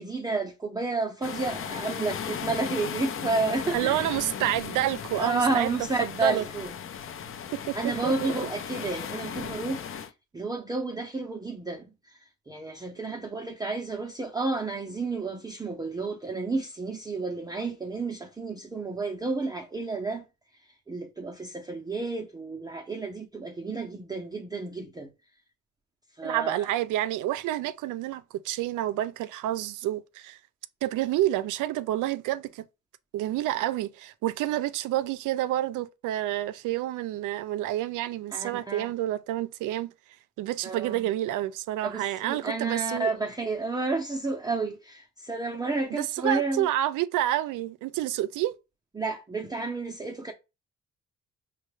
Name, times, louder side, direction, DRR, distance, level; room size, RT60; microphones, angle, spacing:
voice 1, 0.0-4.1 5.1-6.7 7.7-10.1 10.3-12.2 12.5-20.2 20.9-25.1 26.2-26.7 38.3-38.9 40.6-41.0 41.8-46.7 48.9-50.3, right 3 dB, 15° right, 0.6 m, -31 dB
sound 1, 1.2-10.1, left 7 dB, 45° left, 0.5 m, -36 dB
voice 2, 3.7-5.7 6.0-6.4 7.5-7.8 8.0-8.3 13.1-13.2 26.2-30.4 30.8-32.6 33.1-39.9 40.4-43.1 45.9-48.5, right 14 dB, 85° right, 0.5 m, -29 dB
5.3 x 2.3 x 3.1 m
cardioid pair, 90°, 30 cm